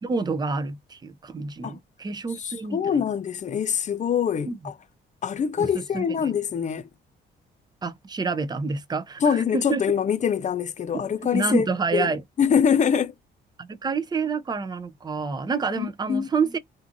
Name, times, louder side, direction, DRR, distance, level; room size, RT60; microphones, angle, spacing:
voice 1, 0.0-2.8 4.5-4.6 5.6-5.7 5.9-6.3 7.8-9.8 10.9-11.0 11.3-12.2 13.6-16.6, right 4 dB, 20° right, 0.5 m, -28 dB
voice 2, 2.3-4.7 5.2-6.9 9.2-11.7 11.9-12.1 12.4-13.1 15.7-16.3, left 7 dB, 40° left, 0.5 m, -24 dB
2.6 x 2.5 x 2.5 m
cardioid pair, 90°, 20 cm